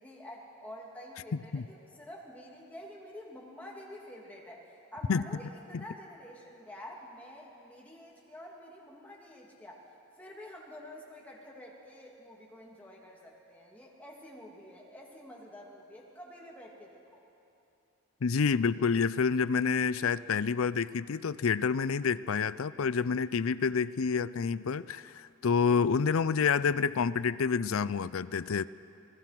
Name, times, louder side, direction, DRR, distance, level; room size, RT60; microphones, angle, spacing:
voice 1, 0.0-4.6 4.9-9.8 10.2-17.2, left 1 dB, 5° left, -3 dB, 2.7 m, -48 dB
voice 2, 18.2-28.7, left 5 dB, 75° left, 17 dB, 0.5 m, -28 dB
27.0 x 18.5 x 6.0 m, 2.7 s
head